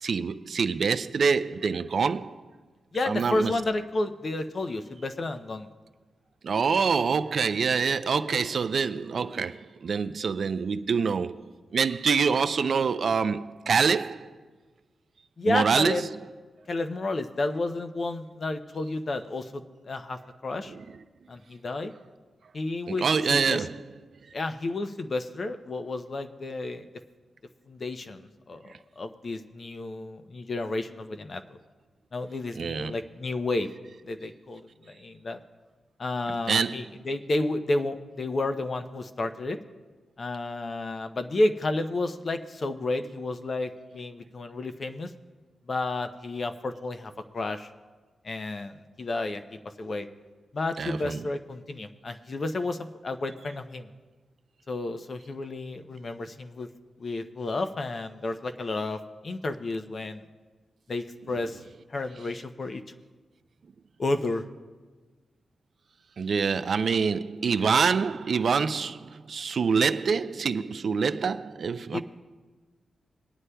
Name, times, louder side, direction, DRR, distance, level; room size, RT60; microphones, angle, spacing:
voice 1, 0.0-2.3 3.1-3.5 6.4-11.4 11.7-14.2 15.5-16.0 22.9-23.7 32.6-32.9 36.5-36.8 50.8-51.2 66.2-72.0, right 5 dB, 50° right, 0.3 m, -25 dB
voice 2, 2.9-5.7 15.4-16.1 16.7-20.7 21.3-21.9 22.5-23.7 24.3-26.9 27.7-31.4 32.1-33.7 34.0-35.4 36.0-39.6 40.2-45.1 45.7-47.7 48.2-49.4 49.8-50.1 50.5-53.9 54.7-56.7 57.0-60.2 60.9-61.6 61.9-62.8 64.0-64.4 71.9-72.0, left 2 dB, 35° left, 0.5 m, -31 dB
21.0 x 9.6 x 2.2 m
wide cardioid pair, 165°, 0 cm